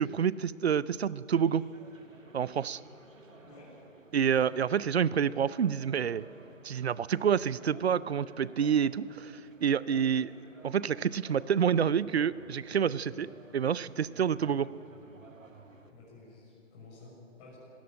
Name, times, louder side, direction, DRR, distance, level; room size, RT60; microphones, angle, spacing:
voice 1, 0.0-1.6 2.3-2.8 4.1-6.3 6.6-9.3 9.6-10.3 10.6-14.7, right 8 dB, 55° right, 19 dB, 0.7 m, -28 dB
sound 1, 1.3-15.9, right 3 dB, 80° right, 2.2 m, -55 dB
voice 2, 3.4-3.8 15.9-17.6, left 3 dB, 25° left, -5 dB, 6.6 m, -52 dB
20.5 x 17.0 x 9.8 m, 2.9 s
figure-of-eight pair, 145°, 38 cm